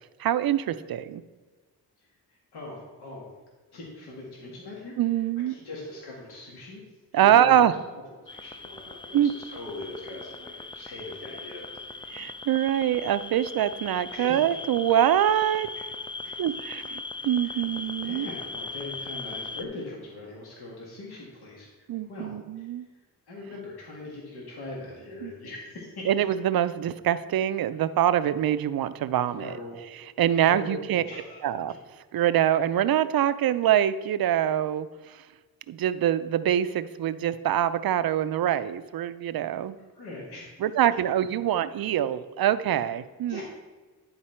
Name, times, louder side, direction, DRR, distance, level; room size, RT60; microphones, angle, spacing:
voice 1, 0.2-1.2 5.0-5.5 7.1-7.7 9.1-9.3 12.1-15.7 16.4-18.3 21.9-22.9 25.2-25.3 26.1-29.6 29.9-31.0 31.4-31.7 32.1-35.2 35.7-39.8 40.6-43.4, right 11 dB, 65° right, 13 dB, 0.5 m, -24 dB
voice 2, 2.0-3.3 3.7-5.0 5.5-6.8 7.2-8.0 8.3-12.1 14.1-14.6 16.2-16.3 17.4-17.6 18.0-21.7 22.1-22.3 22.6-22.7 23.3-26.1 29.3-29.8 30.3-31.5 40.0-40.6 43.3-43.4, left 2 dB, 75° left, -4 dB, 1.7 m, -41 dB
sound 1, 8.3-19.6, left 3 dB, 15° left, 0.4 m, -39 dB
10.0 x 4.0 x 4.4 m, 1.3 s
cardioid pair, 60°, 39 cm